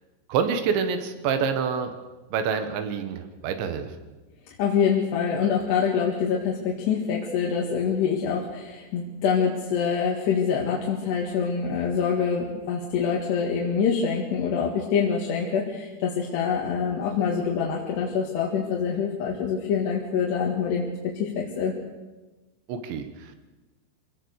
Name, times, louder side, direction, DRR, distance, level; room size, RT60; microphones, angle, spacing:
voice 1, 0.3-1.9 2.3-3.9 22.7-23.3, right 6 dB, 80° right, 8 dB, 3.7 m, -27 dB
voice 2, 4.6-21.7, left 6 dB, 70° left, -2 dB, 4.0 m, -25 dB
26.0 x 17.5 x 6.6 m, 1.2 s
omnidirectional pair, 5.1 m